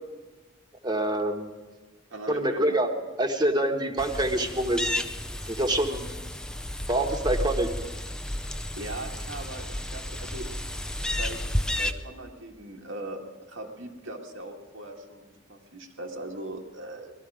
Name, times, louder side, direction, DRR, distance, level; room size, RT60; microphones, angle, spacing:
voice 1, 0.8-1.6 2.3-2.9 3.2-4.9 5.5-6.0 6.9-7.7, right 1 dB, 20° right, 4 dB, 1.2 m, -26 dB
voice 2, 2.1-2.8 8.8-10.5 11.0-17.1, right 1 dB, 90° right, 0 dB, 2.0 m, -40 dB
sound 1, 4.0-11.9, left 1 dB, 5° left, 0.5 m, -32 dB
20.0 x 13.0 x 5.0 m, 1.3 s
head